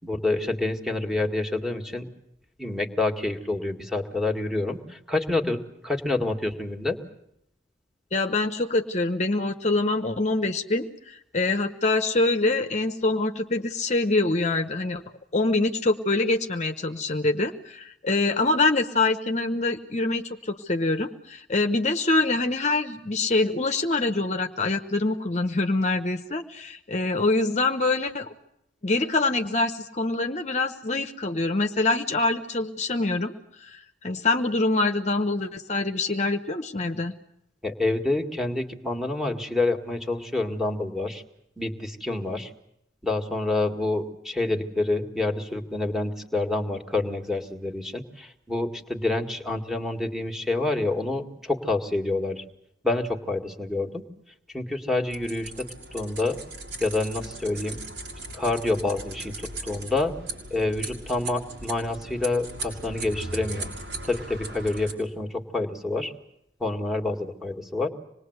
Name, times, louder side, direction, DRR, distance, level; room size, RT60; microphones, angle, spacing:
voice 1, 0.0-2.1 2.6-5.6 5.8-7.0 37.6-41.2 41.6-42.5 43.0-52.4 52.8-54.0 54.5-55.7 55.9-56.4 56.8-57.8 58.3-60.1 60.5-63.7 64.1-66.1 66.6-67.9, left 2 dB, ahead, 5 dB, 2.0 m, -27 dB
voice 2, 8.1-15.0 15.3-28.3 28.8-37.2, left 2 dB, 40° left, 6 dB, 1.0 m, -25 dB
sound 1, 55.1-64.9, right 2 dB, 85° right, 6.5 m, -38 dB
26.5 x 20.5 x 8.1 m, 0.79 s
head